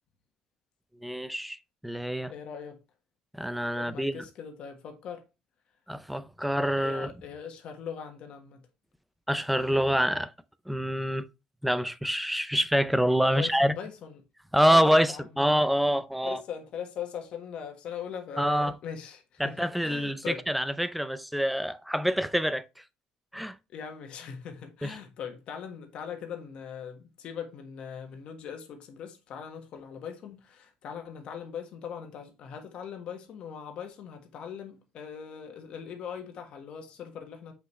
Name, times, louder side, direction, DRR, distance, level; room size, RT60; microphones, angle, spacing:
voice 1, 1.0-1.6 1.8-2.3 3.3-4.2 5.9-7.1 9.3-10.3 10.7-11.3 11.6-13.7 14.5-16.4 18.4-18.7 19.4-22.6 23.3-23.6 24.8-25.0, equal, ahead, 0.5 m, -26 dB
voice 2, 2.3-2.8 3.7-5.2 6.8-8.6 13.3-14.2 14.7-15.5 16.2-20.4 23.7-37.5, left 7 dB, 50° left, 1.5 m, -40 dB
7.8 x 5.5 x 3.1 m
cardioid pair, 165°, 2 cm